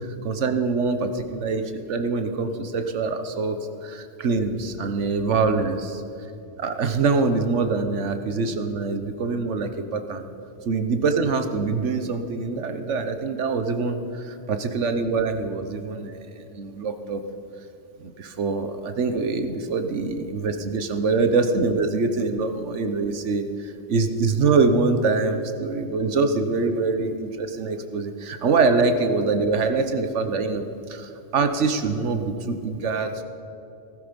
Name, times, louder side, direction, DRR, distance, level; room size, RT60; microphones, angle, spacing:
voice 1, 0.0-3.6 3.8-6.0 6.6-10.2 10.7-16.2 16.5-17.2 18.0-33.2, right 4 dB, 85° right, 8 dB, 1.4 m, -24 dB
16.5 x 14.5 x 5.3 m, 2.7 s
omnidirectional pair, 1.2 m